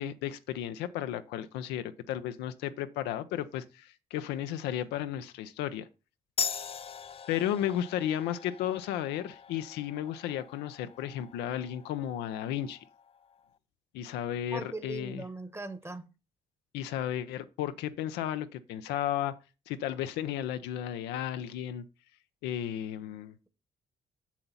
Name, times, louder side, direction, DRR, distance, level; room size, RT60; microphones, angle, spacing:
voice 1, 0.0-5.9 7.3-12.8 13.9-15.2 16.7-19.3 19.7-21.8 22.4-23.3, left 11 dB, 80° left, 0.6 m, -34 dB
sound 1, 6.4-13.5, left 6 dB, 35° left, 0.5 m, -41 dB
voice 2, 14.5-16.1, right 3 dB, 15° right, 1.2 m, -39 dB
7.2 x 6.8 x 4.0 m
hypercardioid pair, 50°, 17 cm